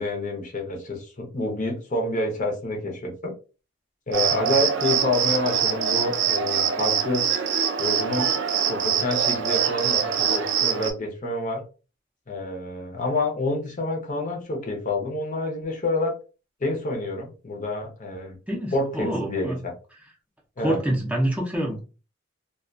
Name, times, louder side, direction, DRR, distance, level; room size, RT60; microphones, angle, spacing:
voice 1, 0.0-3.3 4.1-7.3 7.8-8.4 8.7-11.6 12.3-16.1 16.6-18.4 18.7-19.7 20.6-20.8, left 2 dB, 40° left, 1 dB, 0.6 m, -28 dB
Cricket, 4.1-10.9, right 7 dB, 65° right, 0.4 m, -24 dB
voice 2, 18.5-19.6 20.6-21.8, right 1 dB, 5° right, -2 dB, 0.5 m, -26 dB
2.3 x 2.2 x 2.4 m, 0.34 s
head